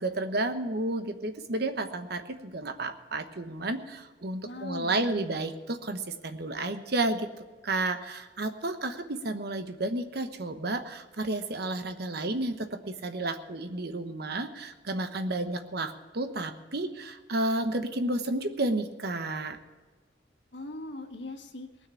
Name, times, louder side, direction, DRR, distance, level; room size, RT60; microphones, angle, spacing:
voice 1, 0.0-7.3 7.6-19.6, right 2 dB, 60° right, 8 dB, 1.1 m, -31 dB
voice 2, 4.4-5.4 20.5-21.7, left 2 dB, 75° left, 4 dB, 1.6 m, -40 dB
19.0 x 6.5 x 8.3 m, 1.3 s
head